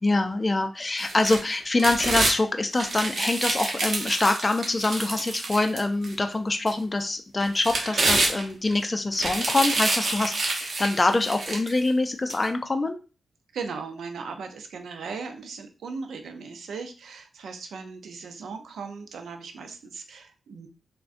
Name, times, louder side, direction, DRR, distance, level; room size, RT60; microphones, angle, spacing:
voice 1, 0.0-13.0, left 2 dB, 30° left, 6 dB, 0.3 m, -25 dB
sound 1, 1.0-2.4 2.7-6.1 6.7-6.8 7.4-8.7 9.1-11.8 12.3-12.4, right 2 dB, 65° right, 0.8 m, -27 dB
voice 2, 13.5-20.7, right 5 dB, 90° right, 7 dB, 0.4 m, -38 dB
3.5 x 2.1 x 2.5 m, 0.34 s
cardioid pair, 70°, 0 cm